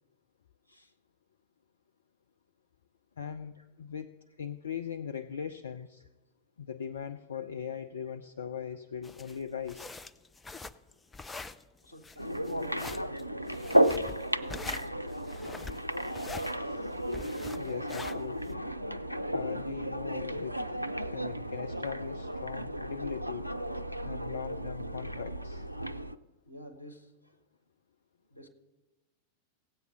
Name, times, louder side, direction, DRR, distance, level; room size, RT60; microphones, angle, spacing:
voice 1, 3.2-4.1 4.4-6.0 6.6-9.9 17.6-18.7 19.3-20.6 21.1-23.5 24.0-25.6, left 7 dB, 70° left, 9 dB, 0.4 m, -39 dB
sound 1, 9.0-18.5, left 3 dB, 10° left, 0.5 m, -44 dB
voice 2, 11.8-13.3 13.6-15.3 25.5-25.6 26.5-27.4 28.3-28.5, equal, 90° left, 9 dB, 1.3 m, -51 dB
sound 2, 12.2-26.2, equal, 90° right, 0.4 m, -33 dB
16.5 x 8.2 x 5.8 m, 1.1 s
figure-of-eight pair, 90°, 0 cm